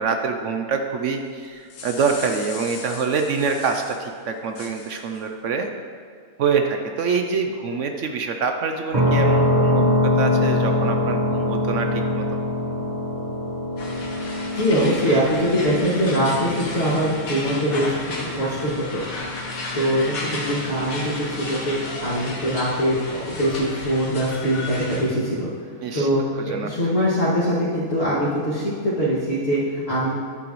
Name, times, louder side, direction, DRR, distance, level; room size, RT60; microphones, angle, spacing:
voice 1, 0.0-5.7 6.4-12.4 25.8-26.1 26.3-26.9, right 5 dB, 65° right, 5 dB, 0.9 m, -25 dB
sound 1, 1.4-4.0 4.5-5.2, left 6 dB, 85° left, 1.4 m, -39 dB
sound 2, 8.9-22.6, left 1 dB, 30° right, 1.2 m, -25 dB
sound 3, 13.8-25.0, left 2 dB, 70° left, 1.7 m, -33 dB
voice 2, 14.5-17.9 18.3-19.0 19.7-25.5 25.9-26.2 26.5-30.1, equal, 45° left, -14 dB, 2.5 m, -22 dB
10.5 x 8.9 x 3.1 m, 2.3 s
omnidirectional pair, 1.5 m